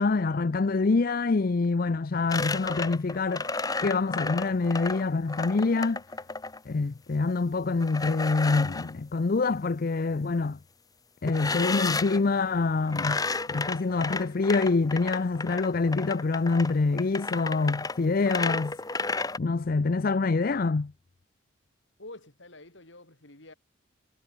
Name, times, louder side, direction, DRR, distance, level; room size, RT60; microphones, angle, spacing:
voice 1, 0.0-6.0 6.7-10.6 11.2-18.7 19.4-20.9, left 3 dB, 45° left, 0.5 m, -26 dB
sound 1, 2.3-6.6 7.8-8.9 11.3-12.2 12.9-19.4, left 3 dB, 20° left, 1.3 m, -32 dB
voice 2, 22.0-23.5, left 2 dB, 70° left, 4.5 m, -47 dB
head